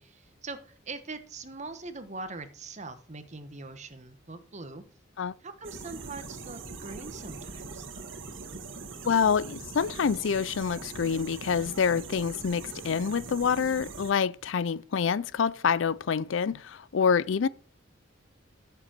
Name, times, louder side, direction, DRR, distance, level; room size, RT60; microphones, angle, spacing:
voice 1, 0.0-4.8 5.4-8.1, right 3 dB, 40° right, 1.2 m, -42 dB
sound 1, 5.6-14.1, right 4 dB, 80° right, 1.7 m, -42 dB
voice 2, 9.0-17.5, left 6 dB, 75° left, 0.4 m, -27 dB
14.0 x 6.9 x 4.5 m
head